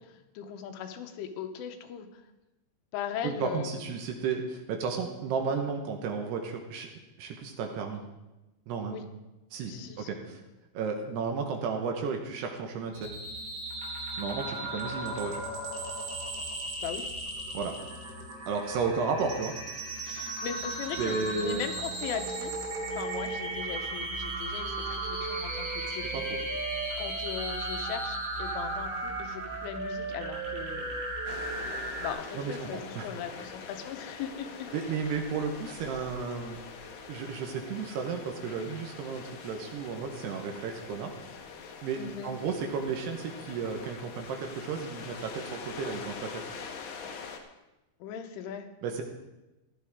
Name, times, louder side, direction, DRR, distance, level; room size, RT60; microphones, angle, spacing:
voice 1, 0.0-2.2 2.9-3.9 8.9-9.0 9.7-10.1 16.8-17.1 20.0-21.2 21.4-22.5 22.9-26.3 27.0-30.9 32.0-34.7 42.0-42.3 48.0-48.7, left 8 dB, 90° left, 6 dB, 3.5 m, -39 dB
voice 2, 3.2-6.9 7.2-8.0 8.7-9.0 9.5-10.4 10.7-13.1 14.2-15.4 17.5-17.8 18.5-19.5 21.0-21.7 26.1-26.4 32.3-33.1 34.7-36.6 37.1-41.1 41.8-46.5 48.8-49.0, right 5 dB, 70° right, 3 dB, 2.9 m, -33 dB
sound 1, 12.9-32.1, right 2 dB, 90° right, 5.8 m, -36 dB
Wind instrument woodwind instrument, 24.6-32.0, right 4 dB, 50° right, 4.7 m, -39 dB
sound 2, 31.3-47.4, left 5 dB, 75° left, 1.9 m, -44 dB
16.5 x 12.0 x 3.6 m, 1.0 s
omnidirectional pair, 5.5 m